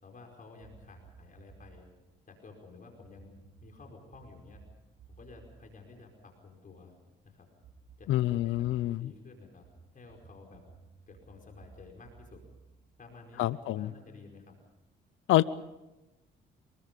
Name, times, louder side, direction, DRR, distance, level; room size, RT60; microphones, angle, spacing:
voice 1, 0.0-1.9 2.3-3.3 3.6-4.6 5.1-6.9 7.2-7.5 8.0-9.7 9.9-10.7 11.1-12.4 13.0-14.5, left 3 dB, 45° left, 2 dB, 5.0 m, -52 dB
sound 1, 0.6-1.9 3.0-6.7 7.6-8.9 9.6-13.6, right 4 dB, 80° right, 5.3 m, -57 dB
voice 2, 8.1-9.1 13.4-13.9 15.3-15.4, left 15 dB, 85° left, 17 dB, 0.7 m, -26 dB
28.5 x 21.0 x 5.4 m, 1.0 s
cardioid pair, 90°, 20 cm